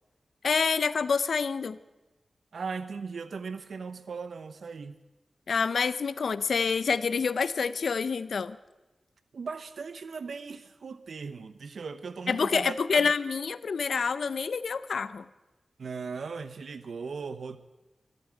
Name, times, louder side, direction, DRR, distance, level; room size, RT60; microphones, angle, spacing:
voice 1, 0.4-1.8 5.5-8.6 12.3-15.3, left 5 dB, 75° left, 0.6 m, -27 dB
voice 2, 2.5-5.0 9.3-13.1 15.8-17.6, right 5 dB, 80° right, 0.8 m, -38 dB
12.5 x 12.0 x 9.1 m
wide cardioid pair, 100°, 0 cm